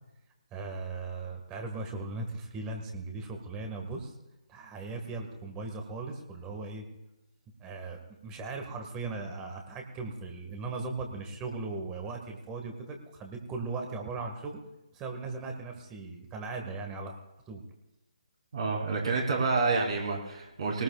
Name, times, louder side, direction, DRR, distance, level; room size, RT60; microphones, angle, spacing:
voice 1, 0.5-4.1 4.5-6.8 7.6-14.6 14.9-17.2 17.5-17.6, right 3 dB, 15° right, 4 dB, 1.7 m, -38 dB
voice 2, 18.5-20.8, right 4 dB, 50° right, -1 dB, 3.6 m, -28 dB
21.0 x 19.0 x 2.4 m, 0.93 s
figure-of-eight pair, 145°, 4 cm